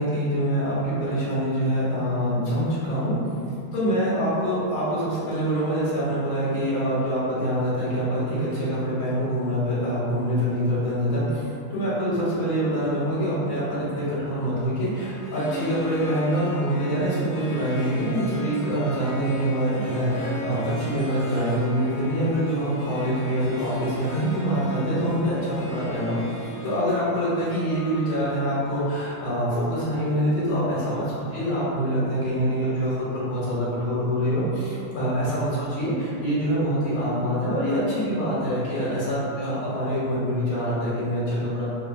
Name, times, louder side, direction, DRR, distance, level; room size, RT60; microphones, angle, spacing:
voice 1, 0.0-3.1 3.7-41.7, equal, 80° left, -9 dB, 1.6 m, -25 dB
Harp, 15.0-29.5, left 1 dB, 60° left, 0.9 m, -37 dB
4.1 x 2.4 x 2.3 m, 2.5 s
omnidirectional pair, 2.3 m